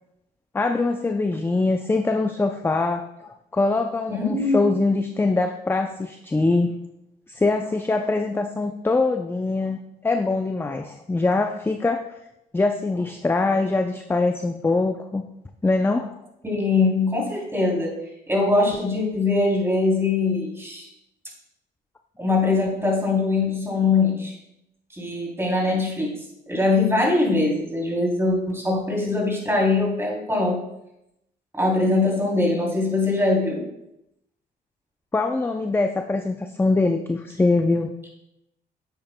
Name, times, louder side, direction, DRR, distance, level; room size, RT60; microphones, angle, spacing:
voice 1, 0.5-6.7 7.3-9.8 10.0-12.0 12.5-15.2 15.6-16.2 35.1-37.9, left 3 dB, 10° left, 5 dB, 0.5 m, -23 dB
voice 2, 4.1-4.7 16.4-17.9 18.3-20.9 22.2-24.3 24.9-26.1 26.5-30.6 31.5-33.6, left 3 dB, 15° right, -2 dB, 3.1 m, -22 dB
8.9 x 8.7 x 2.2 m, 0.85 s
cardioid pair, 85°, 18 cm